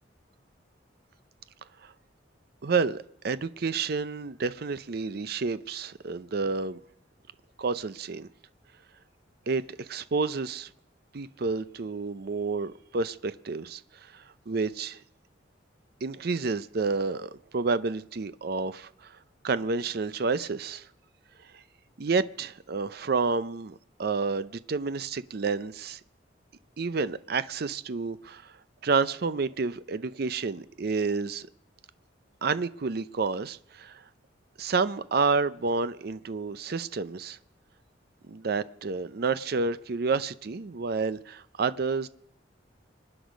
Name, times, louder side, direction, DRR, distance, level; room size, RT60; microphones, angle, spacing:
voice 1, 2.6-6.8 7.6-8.3 9.5-10.7 11.1-15.0 16.0-20.9 21.4-21.6 22.0-26.0 26.8-28.6 28.8-31.5 32.4-34.0 34.6-37.4 38.3-42.1, right 4 dB, 55° right, 0.5 m, -30 dB
25.0 x 9.9 x 5.1 m
head